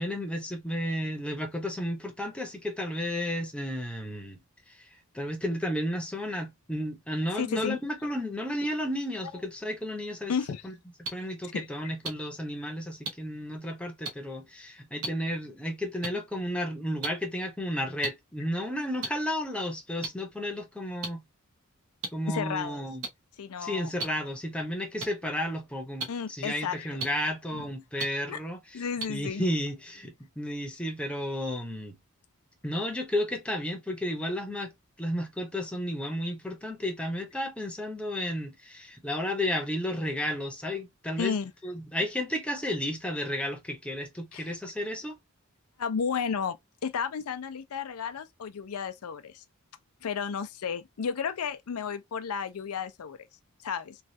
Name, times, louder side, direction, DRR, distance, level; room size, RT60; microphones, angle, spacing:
voice 1, 0.0-4.4 4.7-4.9 5.1-10.4 10.6-10.7 11.1-21.2 22.1-23.1 23.6-28.8 29.1-32.0 32.6-34.7 35.0-41.4 41.6-45.2, left 1 dB, 5° left, 0.7 m, -32 dB
voice 2, 7.4-7.8 10.3-10.6 11.5-11.9 22.3-22.8 23.4-23.9 26.1-27.0 27.5-27.6 28.3-28.4 28.7-29.4 41.2-41.5 44.3-44.6 45.8-46.6 46.8-49.4 50.0-53.3 53.6-54.0, left 6 dB, 85° left, 0.5 m, -33 dB
sound 1, 11.0-11.1 12.0-12.1 13.1-13.2 14.0-14.1 15.0-15.1 16.0-16.1 17.0-17.1 18.0-18.1 19.0-19.1 20.0-20.1 21.0-21.1 22.0-22.1 23.0-23.1 24.0-24.1 25.0-25.1 26.0-26.1 27.0-27.1 28.0-28.1 29.0-29.1, right 3 dB, 70° right, 0.9 m, -32 dB
3.2 x 2.3 x 2.6 m
head